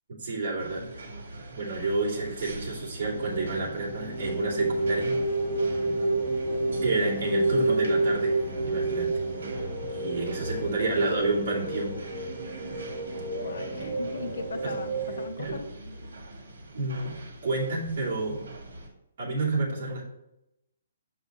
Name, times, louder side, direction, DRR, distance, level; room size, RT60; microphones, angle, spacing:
voice 1, 0.2-1.1 1.5-5.1 6.8-8.4 8.6-9.5 9.9-12.0 13.8-13.9 14.6-14.7 15.4-15.6 16.7-17.2 17.4-18.5 19.2-20.0, right 3 dB, 40° right, -6 dB, 2.6 m, -30 dB
sound 1, 0.6-18.9, right 2 dB, 65° right, 1.8 m, -43 dB
sound 2, 3.0-15.3, right 2 dB, 10° right, 2.4 m, -30 dB
voice 2, 13.4-15.7, left 4 dB, 75° left, 9 dB, 0.7 m, -39 dB
7.6 x 5.3 x 3.0 m, 0.86 s
hypercardioid pair, 180°, 0 cm